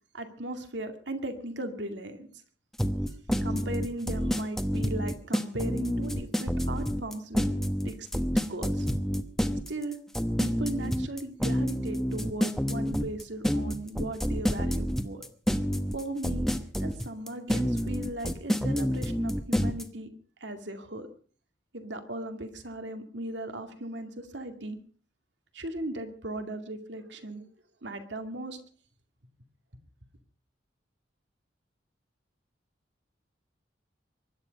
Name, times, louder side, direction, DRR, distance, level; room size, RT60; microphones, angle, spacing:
voice 1, 0.1-2.3 3.4-7.4 7.8-8.9 9.7-10.0 10.4-15.2 15.9-16.5 16.8-20.1 20.4-21.1 21.7-24.8 25.5-27.4 27.8-28.6, right 1 dB, 75° right, 7 dB, 2.2 m, -37 dB
sound 1, 2.8-19.8, equal, ahead, 1.0 m, -28 dB
24.0 x 11.5 x 5.3 m, 0.43 s
head